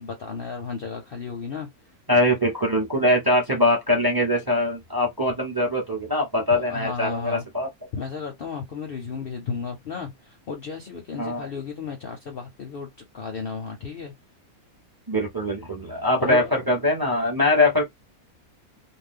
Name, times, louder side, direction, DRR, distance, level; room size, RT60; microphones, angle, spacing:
voice 1, 0.0-1.7 6.4-7.4 7.9-12.9 13.1-14.1 16.2-16.8, left 5 dB, 55° left, 0.6 m, -33 dB
voice 2, 2.1-7.7 11.2-11.5 15.1-17.8, left 1 dB, 20° right, 0.7 m, -22 dB
2.6 x 2.2 x 3.5 m
omnidirectional pair, 1.5 m